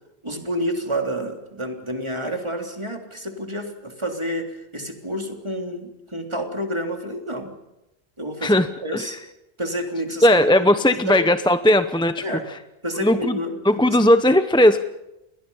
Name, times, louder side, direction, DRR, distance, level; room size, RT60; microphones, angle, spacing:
voice 1, 0.2-7.5 8.2-9.2 9.6-10.7 11.0-11.2 12.2-12.5 12.8-13.6 13.9-14.0, equal, 25° right, 3 dB, 3.4 m, -29 dB
voice 2, 10.2-12.2 13.0-13.4 13.6-14.8, left 1 dB, 5° left, 10 dB, 0.8 m, -17 dB
29.5 x 22.0 x 5.6 m, 0.91 s
omnidirectional pair, 1.1 m